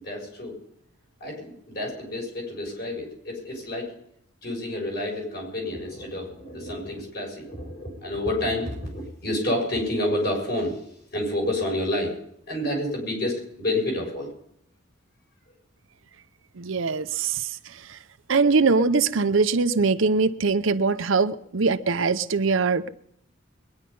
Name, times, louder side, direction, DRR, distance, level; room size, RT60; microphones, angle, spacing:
voice 1, 0.0-0.6 1.2-3.9 4.4-12.2 12.5-14.3, left 1 dB, 50° left, 7.0 m, -29 dB
voice 2, 16.6-18.0 18.3-22.9, right 4 dB, 75° right, 0.7 m, -22 dB
22.0 x 10.5 x 5.5 m
head